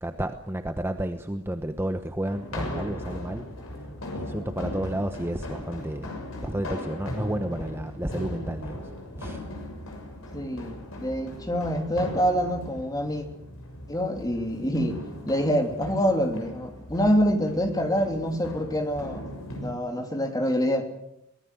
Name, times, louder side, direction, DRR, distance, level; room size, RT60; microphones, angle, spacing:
voice 1, 0.0-3.5 4.1-6.1 6.4-9.4, right 1 dB, 10° right, 7 dB, 1.0 m, -31 dB
sound 1, 2.2-19.7, left 1 dB, 65° left, 6.6 m, -38 dB
voice 2, 10.3-13.3 13.9-15.0 15.3-19.3 19.6-20.9, equal, 15° left, 4 dB, 3.1 m, -26 dB
23.5 x 19.0 x 8.2 m, 0.77 s
head